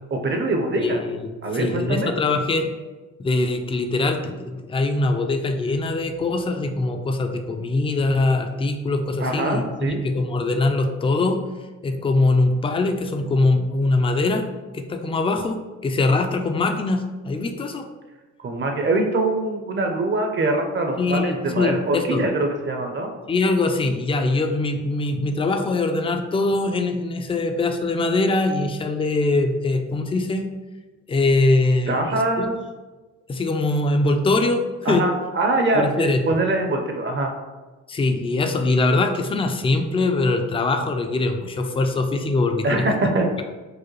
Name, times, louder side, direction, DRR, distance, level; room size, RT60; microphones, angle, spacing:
voice 1, 0.1-1.0 1.4-2.1 9.2-10.0 18.4-23.1 31.9-32.6 34.8-37.3 42.6-43.3, right 2 dB, 40° right, 4 dB, 0.6 m, -23 dB
voice 2, 0.8-2.7 3.2-11.4 11.8-14.5 14.7-17.9 21.0-22.2 23.3-30.4 31.1-32.5 33.3-35.1 35.7-36.2 37.9-42.9, left 2 dB, 20° left, 5 dB, 0.4 m, -22 dB
4.8 x 2.2 x 3.1 m, 1.2 s
cardioid pair, 90°, 30 cm